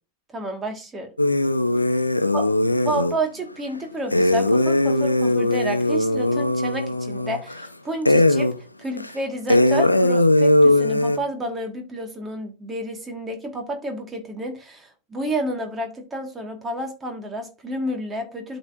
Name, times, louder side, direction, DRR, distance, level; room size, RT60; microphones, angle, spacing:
voice 1, 0.3-1.1 2.3-2.5 2.8-8.5 8.8-18.6, right 1 dB, 15° right, 3 dB, 1.9 m, -30 dB
sound 1, 1.2-3.2 4.1-7.7 8.0-8.6 9.0-9.1 9.5-11.2, left 1 dB, 85° left, 0.6 m, -19 dB
12.5 x 4.2 x 2.7 m, 0.33 s
figure-of-eight pair, 90°, 0 cm